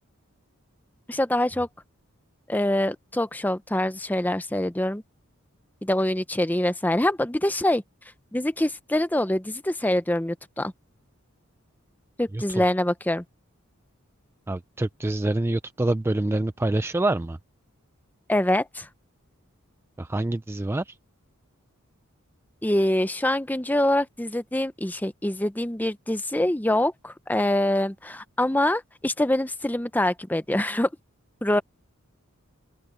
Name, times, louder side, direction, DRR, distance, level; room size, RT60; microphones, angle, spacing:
voice 1, 1.1-1.7 2.5-5.0 5.8-7.8 8.3-10.7 12.2-13.2 18.3-18.9 22.6-30.9 31.4-31.6, left 1 dB, 10° left, 0.7 m, -25 dB
voice 2, 14.5-17.4 20.0-20.9, right 2 dB, 10° right, 0.3 m, -26 dB
open air
head